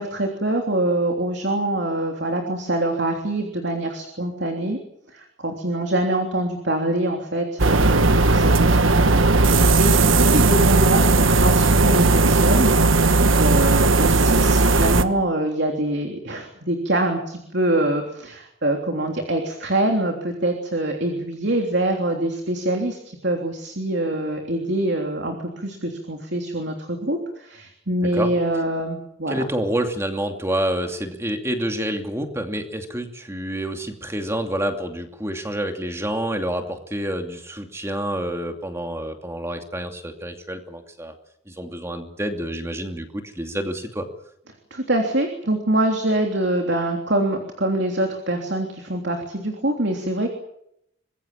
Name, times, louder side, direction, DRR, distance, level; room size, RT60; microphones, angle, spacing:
voice 1, 0.0-4.8 5.1-29.4 44.7-50.3, right 1 dB, 60° right, 3 dB, 3.3 m, -24 dB
sound 1, 7.6-15.0, right 3 dB, 85° right, 1.4 m, -16 dB
voice 2, 29.3-41.1 41.5-44.1, right 1 dB, 15° right, 5 dB, 2.6 m, -28 dB
25.0 x 21.5 x 7.4 m, 0.75 s
head